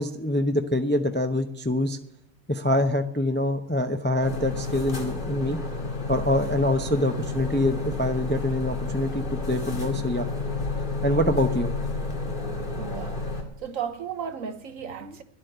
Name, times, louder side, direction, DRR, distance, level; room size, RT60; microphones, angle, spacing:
voice 1, 0.0-2.0 2.5-5.6 6.1-10.3 11.0-11.7 15.0-15.1, left 1 dB, 10° left, 0.5 m, -25 dB
sound 1, 4.2-13.4, left 3 dB, 35° left, 2.1 m, -31 dB
voice 2, 12.6-15.2, right 7 dB, 70° right, 1.4 m, -35 dB
11.5 x 8.3 x 8.0 m
omnidirectional pair, 1.5 m